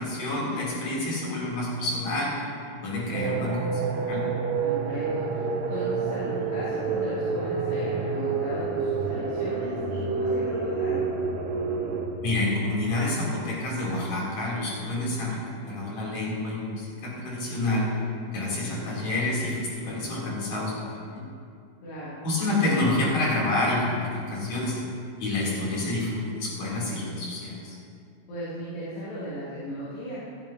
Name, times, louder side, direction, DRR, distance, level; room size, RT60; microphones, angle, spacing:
voice 1, 0.0-2.3 2.8-4.3 12.2-17.9 18.3-21.2 22.2-24.8 25.2-27.8, left 2 dB, 45° left, -6 dB, 4.1 m, -28 dB
sound 1, 3.1-12.1, right 5 dB, 80° right, 3.3 m, -28 dB
voice 2, 4.6-11.1 21.8-22.2 28.3-30.2, equal, 90° left, -12 dB, 4.9 m, -36 dB
16.0 x 15.0 x 2.8 m, 2.3 s
omnidirectional pair, 4.7 m